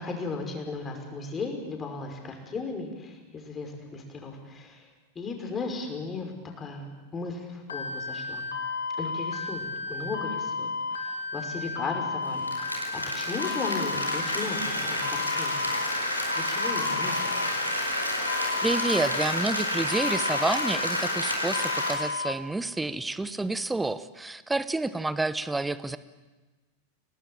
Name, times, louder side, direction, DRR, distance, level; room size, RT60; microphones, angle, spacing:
voice 1, 0.0-4.8 5.2-8.5 9.0-15.6 16.3-17.3, left 3 dB, 20° left, 3 dB, 5.6 m, -36 dB
sound 1, 7.7-22.3, left 4 dB, 70° left, 2.6 m, -33 dB
Applause, 12.2-21.9, left 1 dB, 85° left, 4.7 m, -30 dB
voice 2, 18.6-26.0, right 2 dB, 10° right, 15 dB, 1.2 m, -29 dB
29.0 x 19.0 x 8.9 m, 1.2 s
figure-of-eight pair, 90°, 0 cm